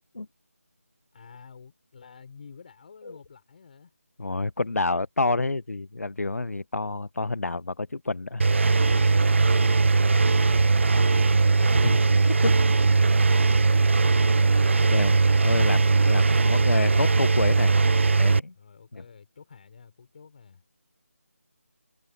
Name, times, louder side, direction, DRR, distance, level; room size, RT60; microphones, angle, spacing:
voice 1, 1.1-3.9 13.8-15.4 18.5-20.6, left 5 dB, 35° left, 5.4 m, -49 dB
voice 2, 4.2-8.4 11.6-12.0 12.3-12.5 14.9-15.1 15.4-17.7 18.2-18.5 18.9-19.0, left 3 dB, 70° left, 0.8 m, -28 dB
Engine, 8.4-18.4, right 4 dB, 50° right, 0.6 m, -20 dB
figure-of-eight pair, 165°, 8 cm